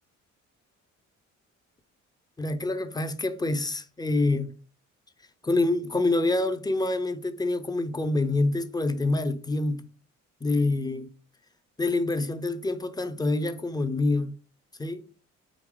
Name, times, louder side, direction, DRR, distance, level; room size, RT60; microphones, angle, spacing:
voice 1, 2.4-4.5 5.4-9.8 10.4-11.1 11.8-14.3 14.8-15.0, left 2 dB, 15° left, 0.6 m, -26 dB
4.9 x 2.9 x 3.6 m
cardioid pair, 90°, 30 cm